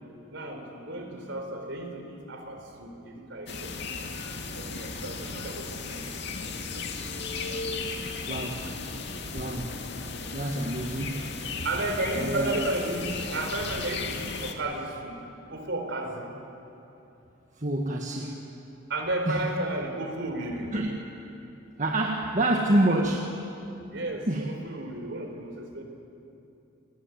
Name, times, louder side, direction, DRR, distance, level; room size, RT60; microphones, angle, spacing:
voice 1, 0.3-3.7 4.5-7.2 7.5-8.0 8.3-8.8 9.5-9.6 11.0-11.1 11.6-15.1 15.5-16.3 18.2-18.3 18.9-20.7 22.9-23.1 23.9-25.8, right 2 dB, 55° right, 4 dB, 4.4 m, -34 dB
sound 1, 3.5-14.5, left 4 dB, 55° left, 2.3 m, -35 dB
voice 2, 8.3-8.6 9.3-9.7 10.3-11.2 12.1-12.6 17.6-18.4 19.3-19.4 20.7-21.0 21.8-23.2 24.3-24.5, right 1 dB, 35° right, 0 dB, 1.7 m, -27 dB
28.0 x 20.0 x 9.5 m, 2.8 s
head